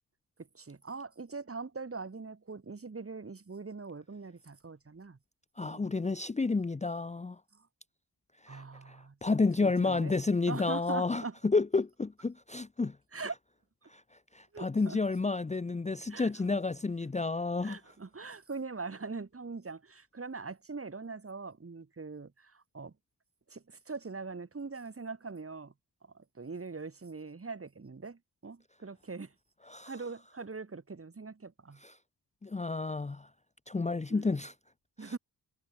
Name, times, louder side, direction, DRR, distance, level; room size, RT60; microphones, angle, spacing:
voice 1, 0.4-5.2 5.6-6.0 7.5-7.7 8.5-9.2 9.6-10.2 10.5-11.3 13.1-13.3 14.5-15.0 16.1-16.4 17.6-22.9 23.5-25.7 26.0-29.3 29.8-31.8 34.1-34.4 35.0-35.2, right 4 dB, 35° right, 4.5 m, -42 dB
voice 2, 5.6-7.4 8.4-13.0 13.9-14.0 14.3-17.8 29.7-29.9 31.8-31.9 32.4-33.3 33.7-34.5 35.0-35.1, left 3 dB, 20° left, 0.7 m, -31 dB
wide cardioid pair, 100°, 39 cm